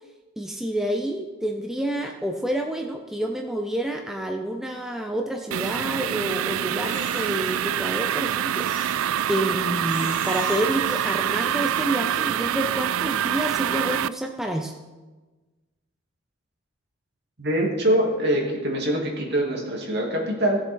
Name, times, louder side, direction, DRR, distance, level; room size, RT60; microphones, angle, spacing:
voice 1, 0.4-8.7 9.0-14.7, right 1 dB, ahead, 2 dB, 0.6 m, -28 dB
sound 1, 5.5-14.1, right 10 dB, 90° right, 0.3 m, -26 dB
Crying sobbing, 6.8-7.6 8.5-9.3 9.8-12.0, left 4 dB, 40° left, 1.6 m, -42 dB
voice 2, 17.4-20.6, right 1 dB, 55° right, -1 dB, 2.7 m, -24 dB
18.0 x 7.0 x 4.6 m, 1.2 s
head